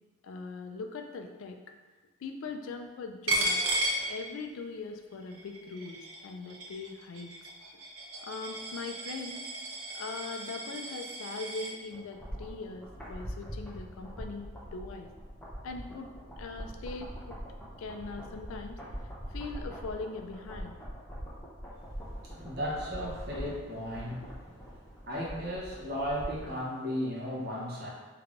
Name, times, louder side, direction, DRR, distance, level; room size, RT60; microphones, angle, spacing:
voice 1, 0.2-1.6 2.2-3.6 4.1-7.3 8.2-9.5 9.9-15.1 15.6-16.1 16.4-17.4 17.8-18.8 19.3-20.7, left 4 dB, 70° left, 5 dB, 0.3 m, -41 dB
Coin (dropping), 3.3-4.8 5.1-11.7, right 1 dB, 85° right, 0.6 m, -34 dB
sound 1, 11.9-26.6 26.9-27.0, equal, 5° left, 0.6 m, -43 dB
voice 2, 22.0-27.9, equal, 45° right, -5 dB, 0.8 m, -36 dB
3.3 x 3.2 x 2.5 m, 1.2 s
head